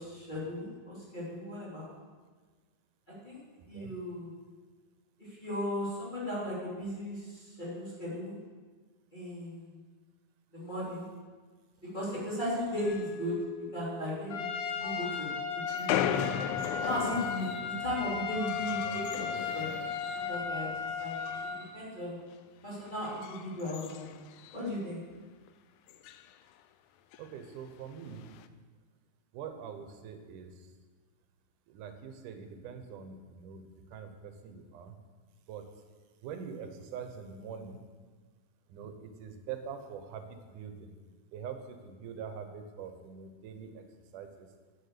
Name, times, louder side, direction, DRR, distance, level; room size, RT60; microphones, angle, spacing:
voice 1, 0.0-1.9 3.2-3.4 3.7-4.3 5.2-8.3 9.1-9.7 10.5-11.1 11.9-14.5 14.8-15.3 15.5-16.1 16.7-19.7 20.1-20.7 21.0-22.2 22.6-24.1 24.5-25.0, equal, 15° left, -8 dB, 2.9 m, -37 dB
voice 2, 3.6-3.9 18.6-19.0 19.2-19.3 19.6-19.7 27.2-28.4 29.3-30.7 31.7-34.9 35.5-35.7 36.2-37.8 38.7-41.0 41.3-43.8 44.1-44.5, right 7 dB, 90° right, 7 dB, 2.4 m, -44 dB
Mallet percussion, 12.8-15.7, right 1 dB, 75° right, 2.4 m, -45 dB
Trumpet, 14.3-21.6, left 6 dB, 60° left, 1.2 m, -35 dB
sound 1, 15.7-20.5 20.8-21.8 22.1-22.3 22.9-24.8 25.2-25.3 25.5-25.6 25.9-26.3 27.1-27.3 28.1-28.5, left 10 dB, 80° left, 1.9 m, -37 dB
9.5 x 6.9 x 6.6 m, 1.4 s
omnidirectional pair, 3.5 m